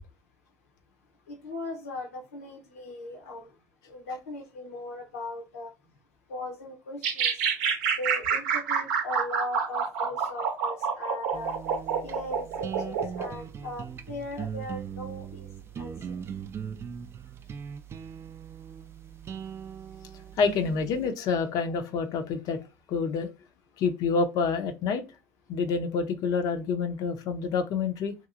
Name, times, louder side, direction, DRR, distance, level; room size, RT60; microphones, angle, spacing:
voice 1, 1.3-3.5 3.9-5.7 6.3-7.3 8.0-11.5 12.0-15.5 15.8-15.9, left 2 dB, 85° left, 0.7 m, -38 dB
sound 1, 7.0-13.3, right 6 dB, 70° right, 0.6 m, -28 dB
sound 2, 11.3-21.1, right 7 dB, 35° right, 0.3 m, -40 dB
voice 2, 20.4-22.6 22.9-23.3 23.8-25.0 25.5-28.1, left 5 dB, 55° left, 0.5 m, -27 dB
2.8 x 2.6 x 2.4 m
hypercardioid pair, 70°, 8 cm